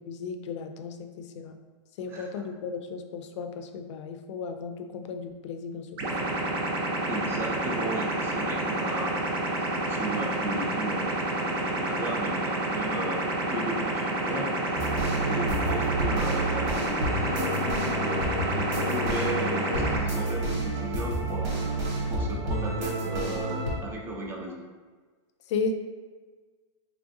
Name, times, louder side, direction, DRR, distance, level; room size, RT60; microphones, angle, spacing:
voice 1, 0.1-1.5 2.0-6.1 25.5-25.7, left 5 dB, 70° left, 6 dB, 0.4 m, -35 dB
sound 1, 6.0-20.0, right 2 dB, 50° right, 0.7 m, -29 dB
voice 2, 7.1-9.2 9.7-13.2 13.5-14.5 15.3-24.6, right 2 dB, 15° right, 0 dB, 0.4 m, -35 dB
sound 2, 14.7-23.8, right 1 dB, 75° right, 1.3 m, -30 dB
3.6 x 3.3 x 2.6 m, 1.4 s
supercardioid pair, 155°, 16 cm